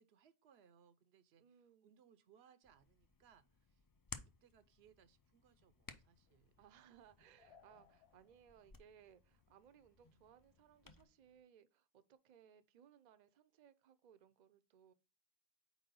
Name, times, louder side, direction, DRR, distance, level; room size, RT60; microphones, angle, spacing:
voice 1, 0.0-3.8 4.2-6.6, right 8 dB, 80° right, 0.9 m, -69 dB
voice 2, 1.4-2.0 6.6-14.9, right 9 dB, 55° right, 0.6 m, -65 dB
Hands, 2.6-11.0, left 4 dB, 35° left, 0.3 m, -59 dB
sound 1, 5.8-11.4, left 6 dB, 85° left, 0.9 m, -73 dB
4.6 x 4.1 x 5.2 m
omnidirectional pair, 1.0 m